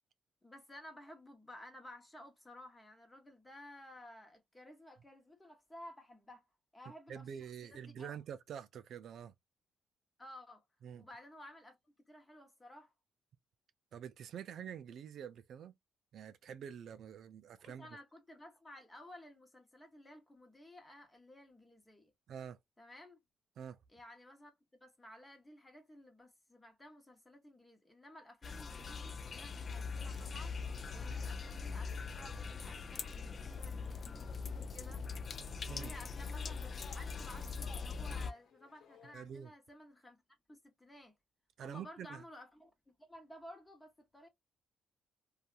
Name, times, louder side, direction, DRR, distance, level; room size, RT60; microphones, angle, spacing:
voice 1, 0.4-6.5 6.7-8.2 10.2-10.6 11.0-11.8 12.1-12.9 17.6-22.1 22.8-23.2 23.9-24.5 24.8-35.0 35.7-40.2 40.5-41.1 41.6-44.3, left 1 dB, 15° left, 1.1 m, -55 dB
voice 2, 7.1-9.3 10.8-11.1 13.9-15.7 16.1-17.9 22.3-22.6 23.6-23.8 31.0-31.2 35.7-35.9 39.1-39.5 41.6-42.2, right 8 dB, 65° right, 0.3 m, -47 dB
sound 1, 28.4-38.3, left 5 dB, 45° left, 0.3 m, -42 dB
sound 2, 28.5-39.2, left 5 dB, 70° left, 0.9 m, -63 dB
2.7 x 2.4 x 2.4 m
cardioid pair, 90°, 0 cm